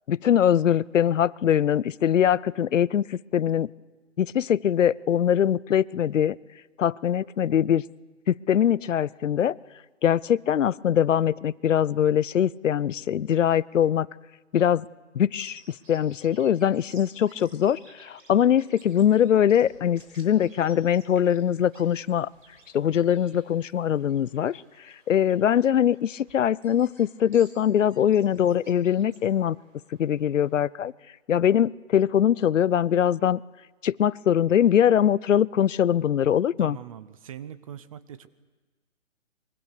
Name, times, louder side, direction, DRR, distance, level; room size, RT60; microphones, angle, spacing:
voice 1, 0.1-3.7 4.2-6.4 6.8-7.8 8.3-9.6 10.0-14.1 14.5-14.9 15.1-15.6 15.9-22.3 22.7-24.6 25.1-29.6 30.0-30.9 31.3-33.4 33.8-36.8, left 9 dB, 70° left, 21 dB, 0.7 m, -22 dB
Bird vocalization bird call bird song, 15.4-30.5, right 2 dB, 80° right, 6.4 m, -57 dB
voice 2, 36.6-38.3, right 10 dB, 25° right, 16 dB, 0.7 m, -41 dB
24.5 x 23.5 x 6.7 m, 1.3 s
hypercardioid pair, 155°, 39 cm